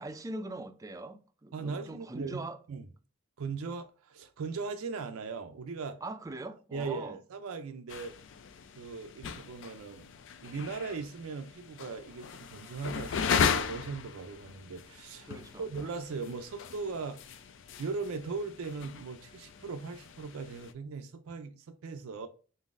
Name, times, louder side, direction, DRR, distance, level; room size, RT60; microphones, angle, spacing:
voice 1, 0.0-2.6 6.0-7.2 15.3-15.7, right 2 dB, 15° right, 0.3 m, -41 dB
voice 2, 1.5-2.8 3.4-6.0 6.7-8.2 8.7-10.1 10.4-15.3 15.6-17.3 17.8-22.3, right 4 dB, 85° right, 0.4 m, -39 dB
sound 1, 7.9-20.7, left 6 dB, 60° left, 0.4 m, -37 dB
3.9 x 3.9 x 2.4 m
head